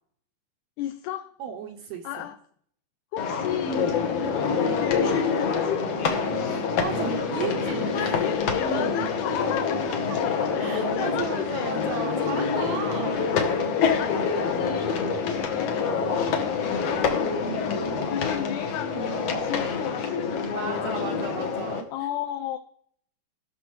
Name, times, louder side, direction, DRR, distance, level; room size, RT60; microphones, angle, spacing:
voice 1, 0.8-1.4 2.0-2.4 3.1-4.0 4.8-5.9 7.9-9.9 10.2-11.8 12.4-12.7 14.0-17.7 18.1-21.2 21.9-22.6, left 12 dB, 80° left, 8 dB, 2.1 m, -34 dB
voice 2, 1.4-2.3 6.4-8.2 10.6-13.4 17.6-18.3 20.5-21.9, right 7 dB, 75° right, 5 dB, 1.8 m, -35 dB
sound 1, 3.2-21.8, left 5 dB, 60° left, 2.0 m, -26 dB
18.0 x 6.2 x 3.1 m, 0.62 s
omnidirectional pair, 3.7 m